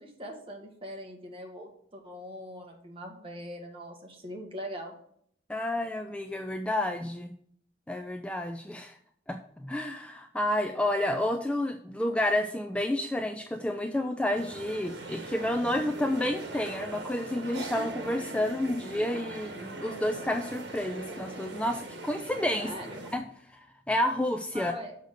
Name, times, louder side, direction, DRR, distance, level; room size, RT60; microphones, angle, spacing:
voice 1, 0.0-5.0 22.6-23.0 24.5-25.0, equal, 30° right, 1 dB, 1.5 m, -42 dB
voice 2, 5.5-7.3 7.9-8.9 9.3-22.7 23.1-23.2 23.5-23.6 23.9-24.7, left 1 dB, 5° left, 6 dB, 0.4 m, -30 dB
sound 1, 14.3-23.2, right 2 dB, 80° right, 1.4 m, -41 dB
6.5 x 5.3 x 6.4 m, 0.65 s
head